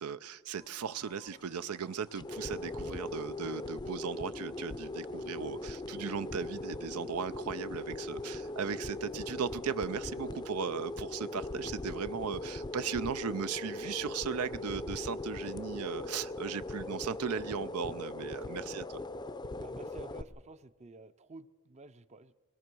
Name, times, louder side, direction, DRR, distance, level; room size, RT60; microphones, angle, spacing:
voice 1, 0.0-18.8, right 6 dB, 85° right, 13 dB, 0.5 m, -37 dB
sound 1, 0.6-20.2, left 2 dB, 20° left, 0.5 m, -40 dB
voice 2, 18.2-18.6 19.6-22.3, right 2 dB, 30° right, 12 dB, 0.6 m, -52 dB
23.5 x 20.5 x 6.1 m, 1.5 s
head